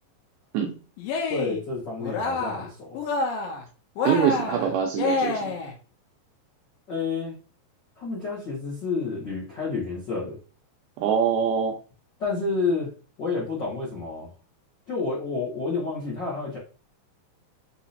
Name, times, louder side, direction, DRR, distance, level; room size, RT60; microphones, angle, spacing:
Cheering, 1.0-1.6 2.0-2.7 2.9-3.6 4.0-5.7, left 3 dB, 80° left, 2.5 m, -28 dB
voice 1, 1.3-3.0 6.9-7.3 8.0-10.4 12.2-12.9 13.2-14.3 14.9-16.6, left 4 dB, 60° left, -6 dB, 1.1 m, -29 dB
voice 2, 4.0-5.6 11.0-11.8, right 8 dB, 80° right, 3 dB, 1.9 m, -24 dB
5.7 x 2.9 x 2.7 m, 0.36 s
omnidirectional pair, 4.1 m